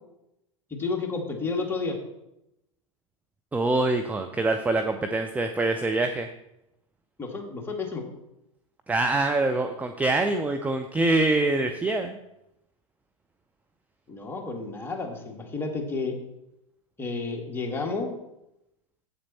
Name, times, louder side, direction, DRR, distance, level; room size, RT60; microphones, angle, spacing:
voice 1, 0.7-2.0 7.2-8.1 14.1-16.1 17.0-18.1, left 4 dB, 15° left, 1 dB, 1.8 m, -31 dB
voice 2, 3.5-6.3 8.9-12.2, right 2 dB, 10° right, 6 dB, 0.6 m, -25 dB
8.0 x 7.4 x 4.2 m, 0.87 s
hypercardioid pair, 95°, 18 cm